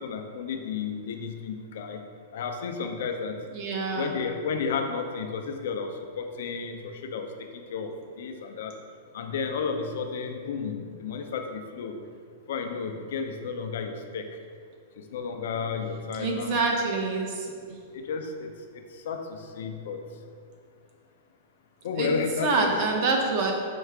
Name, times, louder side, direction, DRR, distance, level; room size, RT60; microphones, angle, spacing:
voice 1, 0.0-2.0 2.3-3.4 3.9-8.7 9.1-12.0 12.5-14.4 15.0-16.6 17.9-20.0 21.8-22.7, left 5 dB, 65° left, 5 dB, 0.4 m, -32 dB
voice 2, 3.5-4.1 16.2-17.5 22.0-22.1 22.4-23.5, right 3 dB, 35° right, 1 dB, 0.6 m, -26 dB
4.5 x 2.4 x 4.6 m, 2.1 s
supercardioid pair, 165°, 0 cm